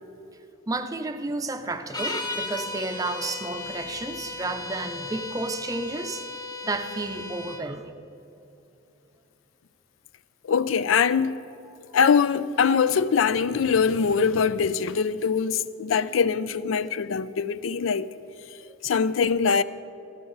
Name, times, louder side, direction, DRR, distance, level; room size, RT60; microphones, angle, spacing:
voice 1, 0.7-6.3 6.6-8.0 11.7-11.8 16.9-17.0 18.7-18.8 19.4-19.6, right 2 dB, 20° right, 0.5 m, -32 dB
sound 1, 1.9-7.7, left 3 dB, 20° left, 0.7 m, -35 dB
voice 2, 10.4-11.4 11.9-18.1 18.8-19.6, left 6 dB, 85° left, 0.4 m, -23 dB
14.0 x 13.5 x 3.9 m
head